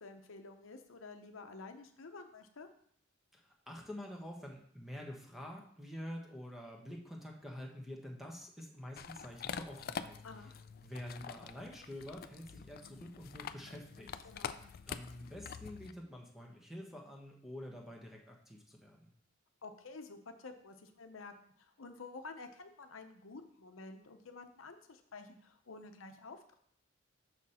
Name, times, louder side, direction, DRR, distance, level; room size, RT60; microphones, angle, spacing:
voice 1, 0.0-2.7 10.2-10.5 14.2-14.6 19.6-26.6, left 3 dB, 85° left, 6 dB, 0.8 m, -50 dB
voice 2, 3.3-10.2 10.8-14.2 14.4-19.1, equal, ahead, 0 dB, 1.1 m, -47 dB
sound 1, 9.0-15.9, left 7 dB, 50° left, 0.3 m, -46 dB
6.5 x 6.3 x 4.3 m, 0.64 s
head